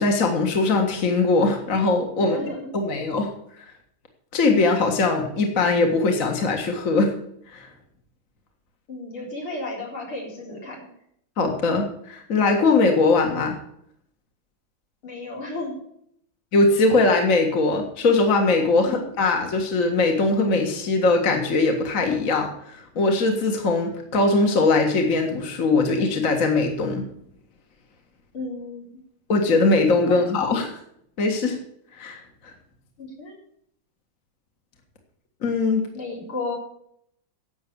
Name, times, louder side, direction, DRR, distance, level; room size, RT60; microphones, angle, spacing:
voice 1, 0.0-2.4 2.7-3.3 4.3-7.1 7.5-7.7 11.4-13.6 16.5-27.1 29.3-30.8 31.2-31.6 32.0-32.5 35.4-35.8, left 3 dB, 40° left, 3 dB, 2.0 m, -21 dB
voice 2, 2.2-2.7 8.9-10.9 15.0-15.7 18.8-19.0 28.3-29.0 30.0-30.2 33.0-33.4 35.9-36.5, left 2 dB, 85° left, -2 dB, 4.9 m, -33 dB
11.5 x 7.8 x 6.9 m, 0.70 s
omnidirectional pair, 2.3 m